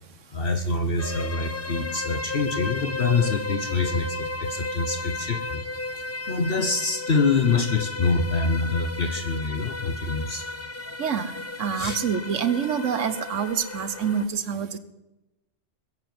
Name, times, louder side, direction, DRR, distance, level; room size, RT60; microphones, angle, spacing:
voice 1, 0.3-5.6 6.0-10.5 10.9-11.0 11.8-12.0, left 4 dB, 55° left, 8 dB, 1.2 m, -25 dB
sound 1, 1.0-14.3, left 2 dB, 15° left, 0.5 m, -34 dB
voice 2, 11.0-14.8, right 7 dB, 90° right, 12 dB, 1.3 m, -27 dB
20.0 x 8.0 x 7.7 m, 0.96 s
omnidirectional pair, 1.2 m